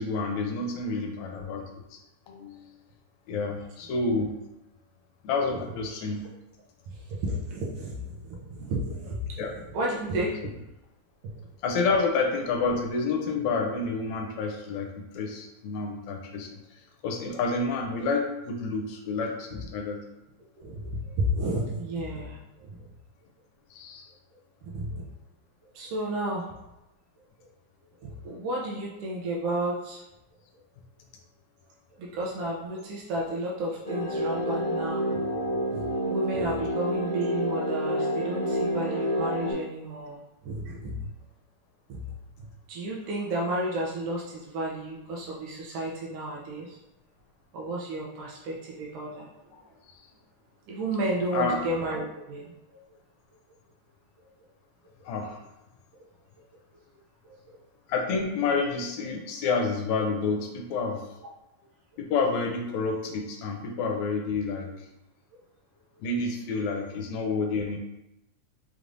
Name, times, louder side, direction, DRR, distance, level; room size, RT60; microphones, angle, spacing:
voice 1, 0.0-1.6 1.9-2.0 2.3-2.7 3.3-4.3 5.2-6.3 9.4-9.5 11.6-20.0 23.7-24.1 51.3-51.6 55.1-55.4 57.9-61.0 62.0-64.9 66.0-67.8, left 4 dB, 80° left, 2 dB, 1.9 m, -29 dB
voice 2, 6.9-9.4 9.7-10.5 11.2-11.3 20.6-22.9 24.6-25.0 25.7-26.5 28.0-30.0 32.0-35.2 35.7-41.1 41.9-42.0 42.4-46.8 47.5-49.3 50.7-52.8 57.2-57.6 65.3-65.4, right 1 dB, 75° right, -4 dB, 1.3 m, -32 dB
sound 1, 33.9-39.5, equal, 45° left, 1.7 m, -29 dB
4.9 x 3.1 x 2.6 m, 0.91 s
omnidirectional pair, 3.3 m